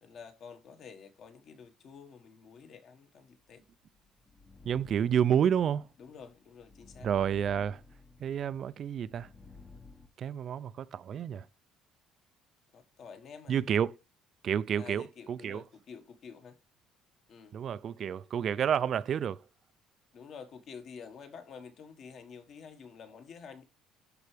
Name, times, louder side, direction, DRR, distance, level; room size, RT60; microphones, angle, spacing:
voice 1, 0.0-3.6 6.0-7.1 12.7-13.6 14.7-16.6 17.3-17.6 20.1-23.6, left 6 dB, 45° left, 1.4 m, -49 dB
sound 1, 3.6-10.1, left 3 dB, 15° left, 0.8 m, -55 dB
voice 2, 4.6-5.9 7.0-7.8 8.2-9.3 10.2-11.5 13.5-14.0 14.4-15.6 17.5-19.4, right 8 dB, 40° right, 0.4 m, -30 dB
11.5 x 4.6 x 3.3 m
cardioid pair, 155°, 0 cm